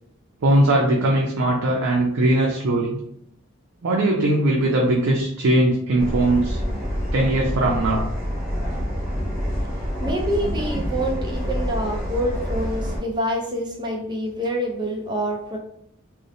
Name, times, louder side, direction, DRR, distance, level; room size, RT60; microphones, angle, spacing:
voice 1, 0.4-3.0 3.8-6.6 7.1-8.1, right 1 dB, 85° right, -2 dB, 0.5 m, -20 dB
sound 1, 6.0-13.0, equal, 40° right, 1.1 m, -27 dB
voice 2, 10.0-15.6, equal, 20° right, 0 dB, 0.4 m, -26 dB
2.7 x 2.0 x 2.6 m, 0.73 s
head